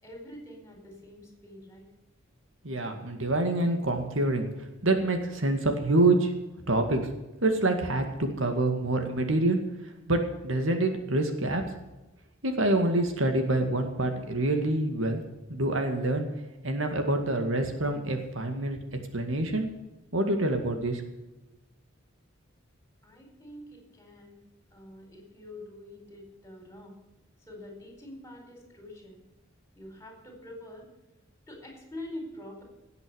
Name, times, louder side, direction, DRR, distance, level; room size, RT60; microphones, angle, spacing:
voice 1, 0.0-1.9 23.0-24.4 24.7-27.0 27.4-29.2 29.7-30.9 31.5-32.6, left 1 dB, 15° left, 2 dB, 4.6 m, -45 dB
voice 2, 2.6-6.3 6.7-7.0 7.4-9.6 10.1-11.6 12.4-15.2 15.5-16.3 16.6-18.8 19.1-19.7 20.1-21.0, right 2 dB, 70° right, 5 dB, 2.1 m, -26 dB
18.0 x 8.2 x 7.0 m, 1.0 s
head